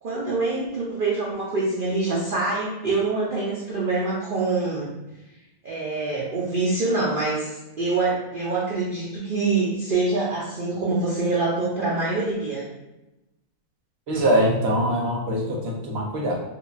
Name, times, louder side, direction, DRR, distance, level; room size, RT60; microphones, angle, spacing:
voice 1, 0.0-4.9 5.6-12.7, right 3 dB, 90° right, -5 dB, 0.4 m, -25 dB
voice 2, 14.1-16.3, equal, 55° right, -2 dB, 0.8 m, -23 dB
4.6 x 2.2 x 2.5 m, 0.98 s
omnidirectional pair, 1.7 m